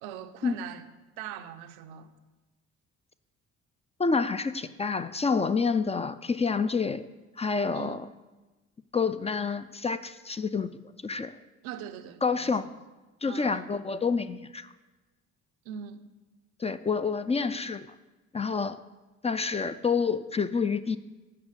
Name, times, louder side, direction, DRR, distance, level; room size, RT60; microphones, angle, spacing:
voice 1, 0.0-0.9 1.2-2.1 7.7-8.1 11.6-12.7 13.3-13.8 15.6-16.1, right 9 dB, 90° right, 8 dB, 0.6 m, -41 dB
voice 2, 4.0-7.0 7.4-8.0 8.9-10.7 11.0-11.4 12.2-12.6 13.2-14.7 16.6-17.9 18.3-18.8 19.2-21.0, left 5 dB, 20° left, 12 dB, 0.3 m, -28 dB
8.5 x 5.2 x 6.4 m, 1.2 s
supercardioid pair, 60°, 35 cm